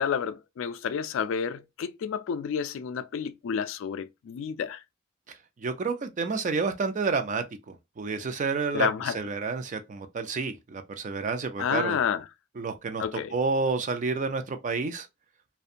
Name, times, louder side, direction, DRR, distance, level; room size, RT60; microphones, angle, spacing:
voice 1, 0.0-4.8 8.7-9.2 11.6-12.2 13.0-13.3, left 7 dB, 65° left, 0.3 m, -30 dB
voice 2, 5.6-12.0 12.6-15.1, right 4 dB, 40° right, 0.4 m, -30 dB
2.6 x 2.2 x 2.5 m
head